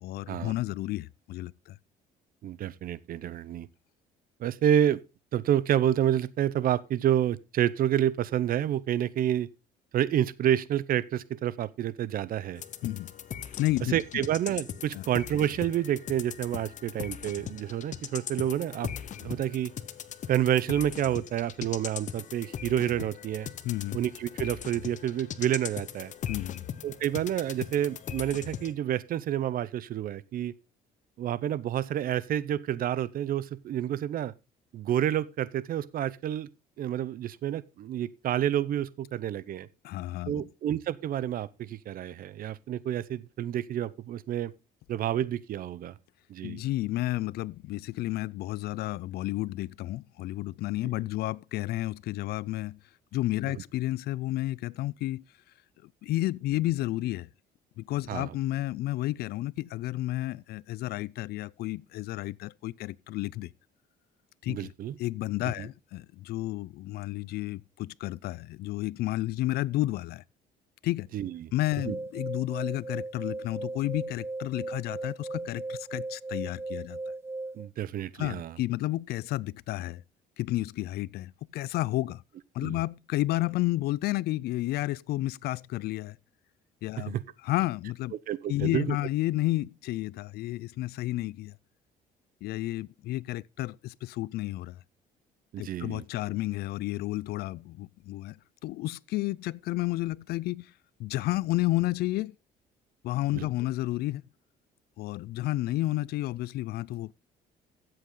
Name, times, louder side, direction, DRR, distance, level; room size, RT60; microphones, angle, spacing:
voice 1, 0.0-1.8 12.8-13.1 13.6-14.2 14.9-15.0 23.6-24.0 26.3-26.6 39.8-40.3 46.4-52.8 53.1-55.2 56.0-57.3 57.8-63.5 64.4-64.7 65.0-70.2 70.8-71.1 71.5-77.0 78.2-80.0 80.4-82.2 82.5-86.2 86.8-87.2 87.4-88.1 88.5-91.5 92.4-94.8 95.6-98.4 98.6-100.7 101.0-102.3 103.0-104.2 105.0-107.1, left 16 dB, 70° left, 0.4 m, -31 dB
voice 2, 2.4-3.7 4.4-5.0 5.3-9.5 9.9-12.6 13.9-18.9 19.2-19.7 20.3-23.5 23.9-26.1 26.8-30.5 31.2-34.3 34.7-36.5 36.8-39.7 40.3-44.5 44.9-45.9 46.3-46.6 53.5-53.6 58.1-58.3 64.5-64.9 65.6-65.7 71.1-71.5 71.9-72.0 77.5-78.6 82.6-82.8 87.0-87.2 88.3-89.0 95.5-96.0 103.3-103.5, right 11 dB, 55° right, 0.8 m, -29 dB
sound 1, 12.6-28.7, left 9 dB, 45° left, 0.9 m, -40 dB
sound 2, 71.7-77.7, right 2 dB, 15° right, 0.6 m, -37 dB
13.0 x 7.9 x 3.9 m
cardioid pair, 110°, 17 cm